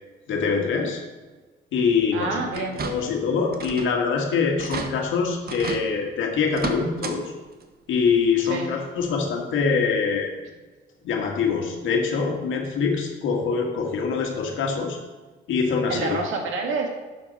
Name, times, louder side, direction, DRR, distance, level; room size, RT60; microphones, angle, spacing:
voice 1, 0.3-1.0 1.7-7.3 7.9-10.3 11.0-15.0 15.5-16.2, left 5 dB, 80° left, 2 dB, 1.9 m, -24 dB
voice 2, 2.1-2.8 8.4-8.7 15.9-16.9, right 3 dB, 85° right, 2 dB, 1.9 m, -27 dB
sound 1, 2.5-3.2 3.5-4.0 4.3-4.4 4.6-4.9 5.5-5.8 6.5-7.2 7.5-7.6 9.0-9.1 9.6-9.7, right 5 dB, 50° right, 1.1 m, -32 dB
11.5 x 7.2 x 4.2 m, 1.3 s
cardioid pair, 90°, 20 cm